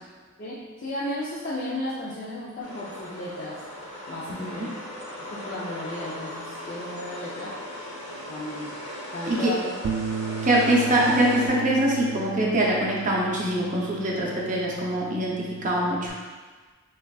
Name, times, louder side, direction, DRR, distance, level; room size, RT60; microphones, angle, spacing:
voice 1, 0.4-3.6 4.1-4.7 5.2-7.6 8.3-8.7 9.1-9.7, left 1 dB, 40° left, -8 dB, 0.5 m, -34 dB
sound 1, 2.6-11.5, left 1 dB, 90° left, 1.0 m, -38 dB
voice 2, 4.4-4.7 9.3-9.5 10.4-16.2, right 1 dB, 40° right, -3 dB, 0.7 m, -23 dB
Bass guitar, 9.8-16.1, right 5 dB, 85° right, 0.3 m, -35 dB
5.7 x 2.4 x 2.3 m, 1.4 s
head